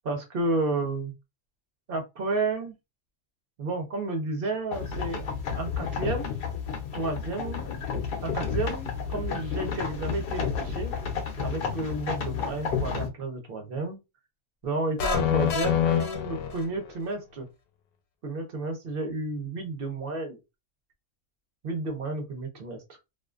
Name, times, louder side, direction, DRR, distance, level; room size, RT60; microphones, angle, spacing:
voice 1, 0.0-1.1 1.9-2.7 3.6-5.2 5.5-6.3 6.9-7.6 8.2-10.9 11.4-14.0 14.6-17.5 18.2-20.4 21.6-23.0, right 2 dB, 50° right, 4 dB, 0.7 m, -31 dB
sound 1, 4.7-13.1, left 6 dB, 65° left, 0.6 m, -31 dB
sound 2, 15.0-17.0, left 9 dB, 80° left, 1.0 m, -26 dB
2.4 x 2.3 x 2.3 m, 0.24 s
omnidirectional pair, 1.5 m